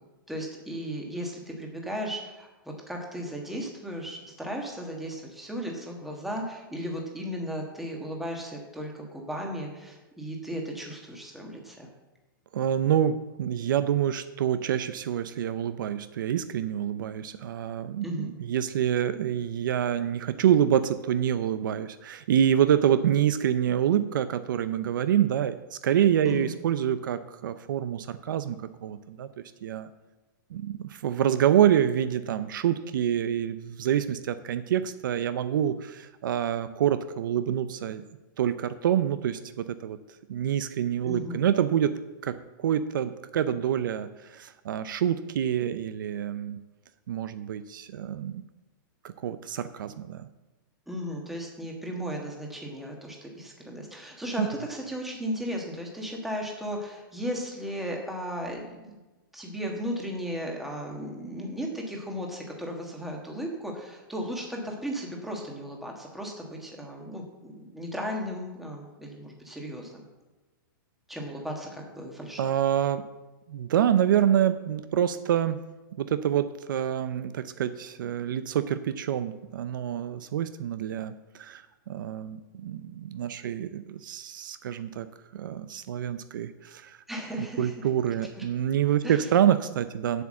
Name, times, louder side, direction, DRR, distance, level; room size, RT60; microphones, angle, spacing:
voice 1, 0.3-2.5 2.9-11.9 18.0-18.3 26.2-26.5 41.0-41.4 50.9-58.9 59.3-70.0 71.1-72.6 87.1-87.7 88.3-88.4 89.0-89.3, equal, ahead, 0 dB, 1.5 m, -35 dB
voice 2, 12.5-29.3 29.6-29.9 30.5-38.0 38.4-40.0 40.3-41.9 42.2-46.6 47.1-48.4 49.2-50.3 54.4-54.5 72.4-73.0 73.5-75.6 76.0-85.1 85.3-87.0 87.4-90.2, right 10 dB, 65° right, 12 dB, 0.6 m, -27 dB
8.1 x 7.2 x 7.4 m, 1.1 s
hypercardioid pair, 165°, 12 cm